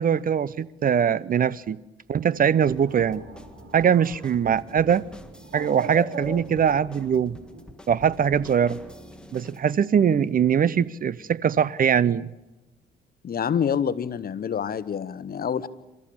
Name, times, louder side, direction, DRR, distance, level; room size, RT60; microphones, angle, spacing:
voice 1, 0.0-1.8 2.1-3.2 3.7-5.0 5.5-7.4 7.9-8.8 9.3-12.3, right 8 dB, 45° right, 0.7 m, -22 dB
Bird, 2.1-7.7, right 3 dB, 70° right, 6.1 m, -40 dB
sound 1, 2.7-9.8, left 1 dB, 5° left, 2.0 m, -46 dB
voice 2, 13.2-15.7, left 7 dB, 50° left, 1.2 m, -27 dB
28.5 x 14.0 x 8.7 m
cardioid pair, 90°, 20 cm